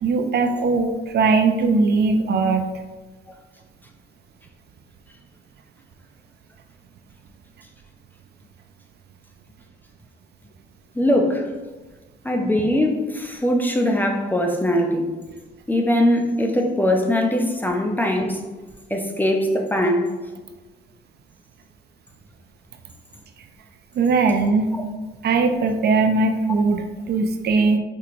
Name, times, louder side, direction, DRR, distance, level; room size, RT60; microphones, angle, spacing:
voice 1, 0.0-2.6 23.9-24.7 25.2-27.8, right 4 dB, 55° right, 6 dB, 0.4 m, -20 dB
voice 2, 11.0-11.4 12.2-15.1 15.7-18.4 18.9-20.1, left 1 dB, 10° left, 2 dB, 0.5 m, -21 dB
4.5 x 2.8 x 2.5 m, 1.2 s
cardioid pair, 90°, 20 cm